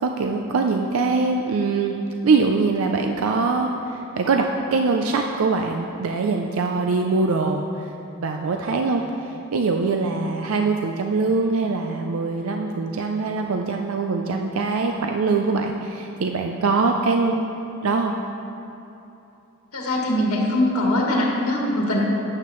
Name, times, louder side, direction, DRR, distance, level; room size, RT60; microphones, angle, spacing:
voice 1, 0.0-2.0 2.2-7.9 8.2-9.0 9.5-17.5 17.8-18.1, right 4 dB, 75° right, 3 dB, 0.4 m, -23 dB
voice 2, 19.7-22.0, left 1 dB, 80° left, -2 dB, 1.5 m, -22 dB
11.5 x 8.7 x 3.1 m, 2.9 s
head